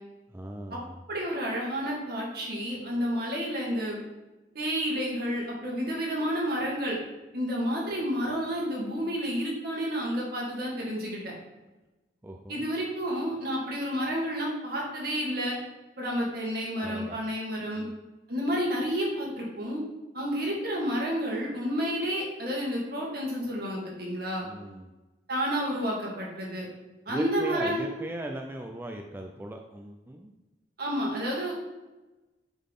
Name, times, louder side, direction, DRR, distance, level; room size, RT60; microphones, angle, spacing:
voice 1, 0.3-1.0 12.2-12.6 16.8-17.2 17.7-17.9 24.4-24.9 27.1-30.3, right 1 dB, 15° right, 2 dB, 0.4 m, -38 dB
voice 2, 1.1-4.0 4.5-7.0 7.3-11.3 12.5-15.6 16.0-17.9 18.3-19.8 20.1-24.5 25.3-26.7 27.1-27.9 30.8-31.5, equal, 60° right, -3 dB, 1.9 m, -30 dB
7.1 x 3.9 x 3.7 m, 1.1 s
head